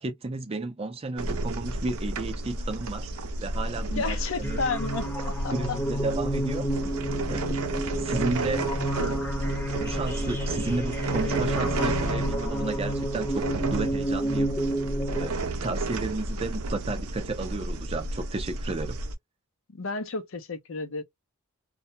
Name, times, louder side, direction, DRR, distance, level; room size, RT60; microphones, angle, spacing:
voice 1, 0.0-3.1 3.4-4.6 5.2-5.3 5.5-6.8 7.3-7.6 8.0-8.6 9.8-14.6 15.2-19.0, right 3 dB, 25° right, 0.4 m, -33 dB
sound 1, 1.2-19.1, right 2 dB, 75° right, 0.6 m, -32 dB
voice 2, 3.9-5.8 19.7-21.0, left 4 dB, 60° left, 0.6 m, -32 dB
sound 2, 4.4-15.3, right 1 dB, 15° left, 0.7 m, -30 dB
2.2 x 2.1 x 2.6 m
head